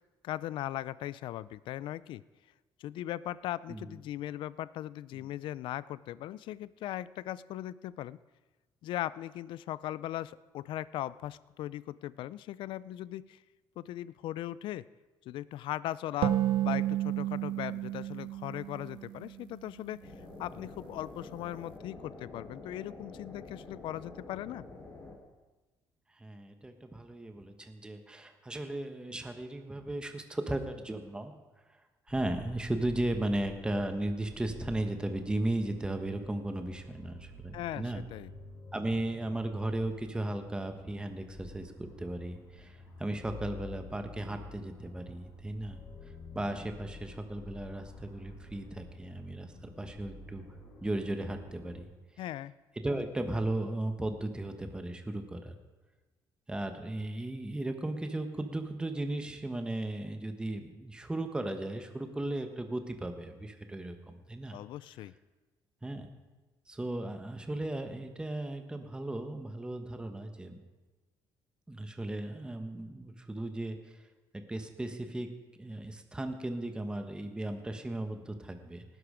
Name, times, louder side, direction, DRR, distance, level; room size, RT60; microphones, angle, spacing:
voice 1, 0.2-2.2 2.8-8.2 8.8-13.4 13.8-14.8 15.3-16.4 16.6-20.0 20.4-24.6 37.5-38.3 52.2-52.5 64.5-65.1, left 13 dB, 75° left, 18 dB, 0.5 m, -39 dB
sound 1, 16.2-19.7, right 13 dB, 85° right, 0.8 m, -31 dB
sound 2, 20.0-25.2, left 3 dB, 35° left, 3.4 m, -48 dB
voice 2, 26.2-31.3 32.1-38.0 38.7-45.8 46.3-50.4 50.8-51.9 52.8-55.6 56.5-64.6 65.8-66.1 66.7-70.6 71.7-74.0 74.3-78.8, right 1 dB, 10° right, 6 dB, 1.2 m, -36 dB
sound 3, 32.1-51.8, left 3 dB, 50° left, 5.9 m, -50 dB
18.5 x 11.0 x 5.1 m, 1.2 s
cardioid pair, 120°, 8 cm